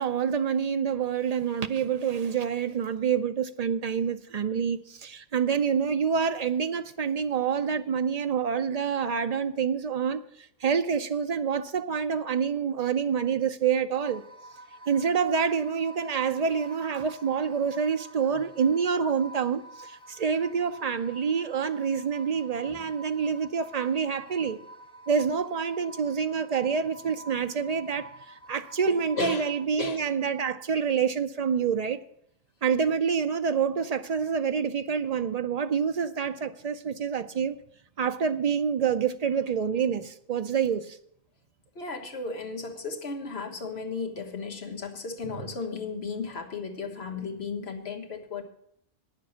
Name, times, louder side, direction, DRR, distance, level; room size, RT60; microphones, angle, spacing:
voice 1, 0.0-10.2 10.6-14.2 14.9-24.6 25.1-32.0 32.6-37.6 38.0-41.0, right 6 dB, 60° right, 0.4 m, -27 dB
sound 1, 14.0-29.7, right 1 dB, 5° left, 1.5 m, -48 dB
voice 2, 28.9-29.5 29.8-30.0 41.7-48.4, left 4 dB, 55° left, 1.6 m, -35 dB
9.3 x 6.7 x 8.9 m
omnidirectional pair, 1.3 m